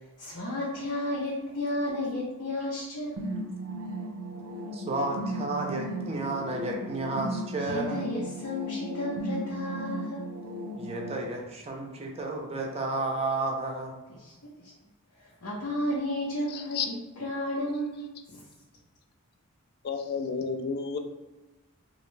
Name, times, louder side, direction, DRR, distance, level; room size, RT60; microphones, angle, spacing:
voice 1, 0.2-3.2 7.6-10.3 14.2-14.7 15.2-18.4, left 1 dB, 80° left, -7 dB, 0.8 m, -33 dB
sound 1, 3.2-11.1, right 1 dB, 80° right, 0.5 m, -36 dB
voice 2, 4.6-8.0 10.7-13.9, right 2 dB, 30° right, 0 dB, 0.4 m, -32 dB
voice 3, 16.5-16.9 19.8-21.0, left 5 dB, 45° left, 6 dB, 0.3 m, -31 dB
3.1 x 2.4 x 3.1 m, 1.1 s
head